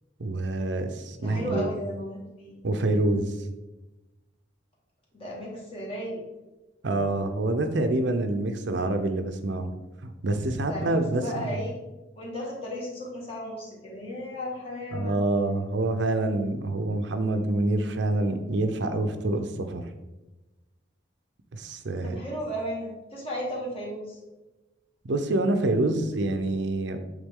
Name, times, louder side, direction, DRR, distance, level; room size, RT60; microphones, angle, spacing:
voice 1, 0.2-1.7 2.6-3.3 6.8-9.7 10.0-11.5 14.9-19.9 21.5-22.2 25.0-27.0, right 2 dB, 65° right, 7 dB, 0.6 m, -26 dB
voice 2, 1.2-2.6 5.1-6.2 10.6-11.8 12.2-15.2 22.0-24.2, equal, 30° left, -4 dB, 1.9 m, -35 dB
8.1 x 3.8 x 3.7 m, 1.1 s
head